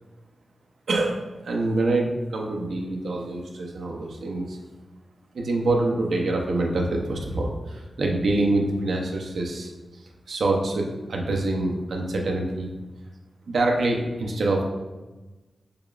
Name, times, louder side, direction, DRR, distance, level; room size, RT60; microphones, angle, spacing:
voice 1, 0.9-4.6 5.3-12.7 13.5-14.6, right 2 dB, 75° right, 1 dB, 0.6 m, -26 dB
6.6 x 2.3 x 2.4 m, 1.2 s
wide cardioid pair, 145°, 0 cm